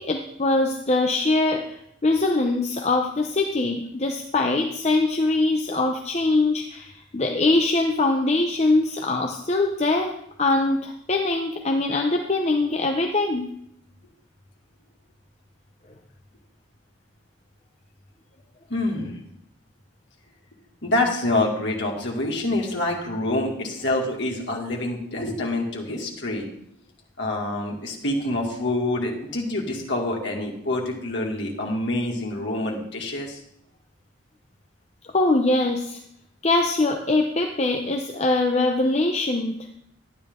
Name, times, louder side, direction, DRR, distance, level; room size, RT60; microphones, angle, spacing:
voice 1, 0.0-10.1 10.4-13.5 35.1-36.0 36.4-39.6, left 2 dB, 30° left, 2 dB, 0.7 m, -22 dB
voice 2, 18.7-19.2 20.8-26.5 27.2-33.4, left 2 dB, 60° left, -1 dB, 2.1 m, -26 dB
12.0 x 10.0 x 3.7 m, 0.74 s
head